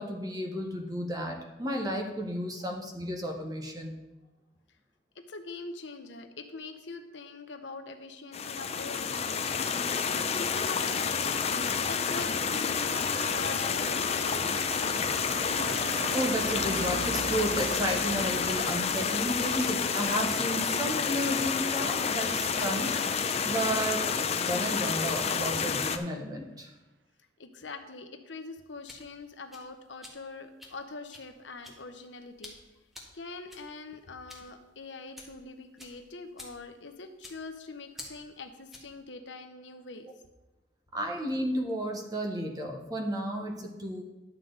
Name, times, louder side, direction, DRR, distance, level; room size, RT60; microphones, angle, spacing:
voice 1, 0.0-4.0 16.1-24.1 24.4-26.7 40.9-44.0, equal, 20° right, 2 dB, 1.2 m, -33 dB
voice 2, 5.1-15.5 27.4-32.6 33.1-40.1, left 3 dB, 90° left, 7 dB, 0.9 m, -43 dB
sound 1, 8.3-26.0, left 6 dB, 35° left, 0.5 m, -29 dB
Car passing by, 10.6-25.3 25.6-25.9, right 4 dB, 75° right, 0.5 m, -43 dB
sound 2, 28.6-39.0, left 1 dB, ahead, 1.5 m, -51 dB
11.0 x 7.5 x 3.9 m, 1.1 s
head